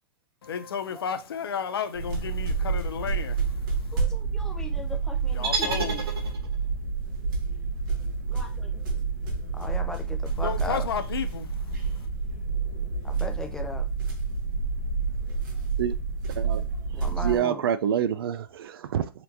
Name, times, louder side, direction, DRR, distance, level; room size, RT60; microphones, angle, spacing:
voice 1, 0.4-4.0 5.3-6.3 10.3-11.6, left 7 dB, 90° left, 0.6 m, -33 dB
sound 1, 1.9-17.4, right 4 dB, 55° right, 1.4 m, -29 dB
voice 2, 3.9-5.7 8.3-8.8 9.5-10.9 13.0-13.8 16.9-17.6, left 2 dB, 5° left, 0.5 m, -38 dB
sound 2, 5.4-6.7, right 4 dB, 90° right, 1.0 m, -30 dB
voice 3, 17.1-19.1, right 9 dB, 75° right, 0.4 m, -27 dB
4.3 x 2.8 x 2.6 m
hypercardioid pair, 140°, 12 cm